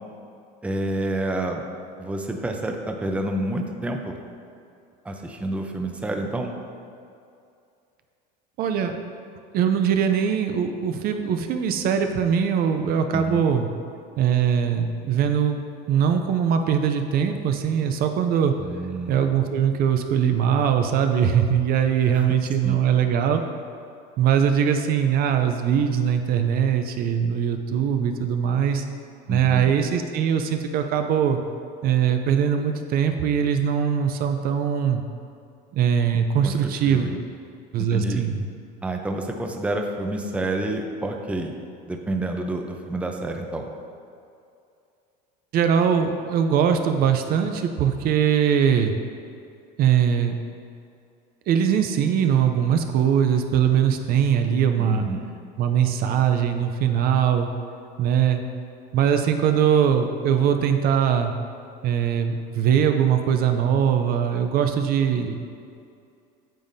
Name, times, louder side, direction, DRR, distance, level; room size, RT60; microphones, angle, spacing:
voice 1, 0.6-1.6 2.0-4.2 5.0-6.6 13.1-13.4 18.6-19.2 22.1-22.4 22.6-22.8 29.3-29.7 36.4-37.2 37.8-38.2 38.8-41.5 41.9-43.7 54.8-55.3, right 1 dB, 5° right, 3 dB, 0.6 m, -29 dB
voice 2, 8.6-9.0 9.5-13.7 14.2-15.6 15.9-18.5 19.1-23.4 24.2-28.8 29.3-31.4 31.8-35.0 35.7-37.2 37.7-38.4 45.5-49.0 49.8-50.4 51.5-55.1 55.6-57.5 58.0-58.4 58.9-61.3 61.8-65.5, right 8 dB, 50° right, 6 dB, 0.5 m, -21 dB
9.0 x 7.0 x 2.7 m, 2.5 s
supercardioid pair, 120°, 21 cm